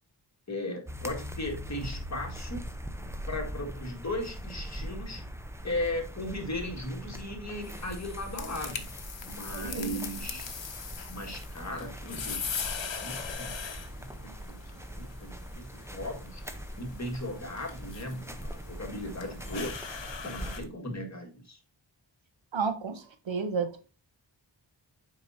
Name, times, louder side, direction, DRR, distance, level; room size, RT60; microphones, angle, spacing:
voice 1, 0.5-2.6 3.3-5.3 5.6-8.9 9.2-10.5 11.1-12.7 13.0-13.5 14.0-16.4 16.8-19.8 20.2-21.6, left 1 dB, 35° left, 1.7 m, -37 dB
sound 1, 0.9-20.7, equal, 5° right, 0.7 m, -41 dB
sound 2, 7.6-20.6, left 6 dB, 70° left, 0.9 m, -41 dB
voice 2, 9.5-10.1 22.5-23.9, right 5 dB, 75° right, 1.0 m, -32 dB
7.7 x 5.3 x 2.7 m
wide cardioid pair, 70°, 46 cm